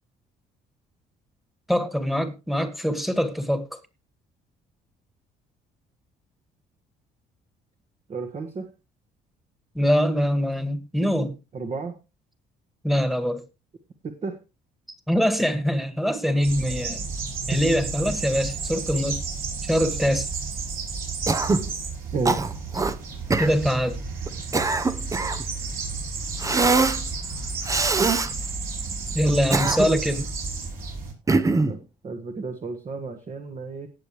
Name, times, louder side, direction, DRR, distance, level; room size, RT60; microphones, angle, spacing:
voice 1, 1.7-3.7 9.8-11.3 12.8-13.4 15.1-17.1 17.5-19.2 19.6-20.3 23.4-24.0 29.1-30.3, equal, ahead, 1.9 m, -23 dB
voice 2, 8.1-8.7 11.5-12.0 14.0-14.4 17.5-17.6 22.1-22.4 31.5-33.9, right 4 dB, 40° right, 1.7 m, -32 dB
sound 1, 16.4-31.1, right 4 dB, 60° right, 6.3 m, -32 dB
Cough, 21.3-21.7 22.3-23.0 23.3-23.5 24.3-25.4 26.4-27.0 27.7-28.3 29.3-30.1 31.3-31.8, right 3 dB, 20° right, 0.8 m, -22 dB
18.5 x 7.1 x 3.2 m
cardioid pair, 110°, 17 cm